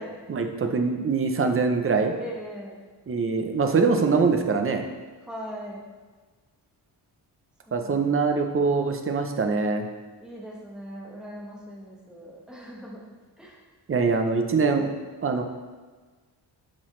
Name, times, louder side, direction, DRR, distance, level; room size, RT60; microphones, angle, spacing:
voice 1, 0.3-2.1 3.1-4.8 7.7-9.9 13.9-14.9 15.2-15.4, right 4 dB, 30° right, 5 dB, 0.7 m, -23 dB
voice 2, 2.2-2.8 5.3-5.8 7.7-8.1 10.2-13.0 13.4-13.6, equal, ahead, -4 dB, 1.4 m, -40 dB
10.0 x 6.1 x 3.2 m, 1.4 s
wide cardioid pair, 170°, 42 cm